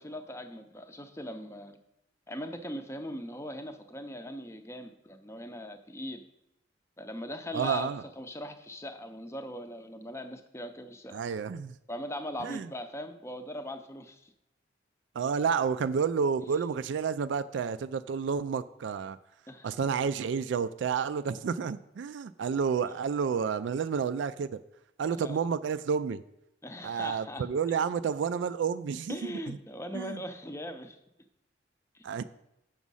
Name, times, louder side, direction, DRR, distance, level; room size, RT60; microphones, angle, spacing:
voice 1, 0.0-1.8 2.3-6.2 7.0-11.2 11.9-14.3 16.4-16.5 19.5-19.7 25.1-25.4 26.6-27.5 29.1-31.0 31.9-32.0, equal, 15° left, 8 dB, 0.6 m, -40 dB
voice 2, 7.5-8.0 11.1-11.7 12.4-12.7 15.2-19.2 19.6-24.6 25.0-26.2 26.8-29.6 29.9-30.2 32.0-32.2, right 6 dB, 75° right, 12 dB, 0.3 m, -30 dB
7.2 x 6.1 x 5.5 m, 0.84 s
head